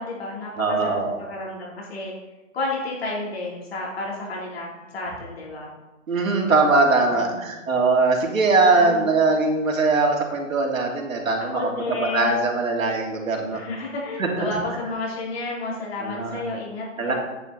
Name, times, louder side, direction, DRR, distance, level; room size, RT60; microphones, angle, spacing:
voice 1, 0.0-2.1 2.5-5.7 7.1-7.7 8.7-9.1 11.5-12.4 13.5-17.1, left 2 dB, 50° left, -5 dB, 3.6 m, -31 dB
voice 2, 0.6-1.2 6.1-11.7 12.1-13.6 14.2-14.6 16.0-16.4 17.0-17.1, right 3 dB, 90° right, 0 dB, 3.1 m, -21 dB
10.0 x 9.5 x 4.2 m, 1.1 s
hypercardioid pair, 175°, 39 cm